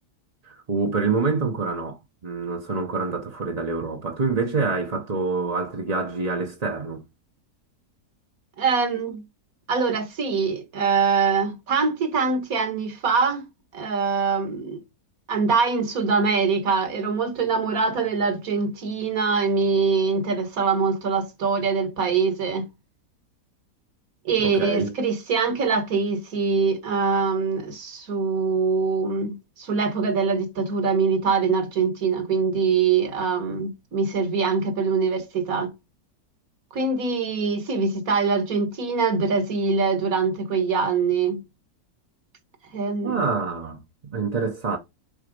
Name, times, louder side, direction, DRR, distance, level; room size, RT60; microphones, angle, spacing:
voice 1, 0.4-7.0 24.4-24.9 43.0-44.8, right 4 dB, 35° right, 0.7 m, -26 dB
voice 2, 8.6-9.2 9.7-13.5 13.7-14.8 15.3-22.7 24.3-35.7 36.7-41.4 42.7-43.2, right 5 dB, 60° right, 1.9 m, -23 dB
7.5 x 4.0 x 5.2 m
omnidirectional pair, 1.8 m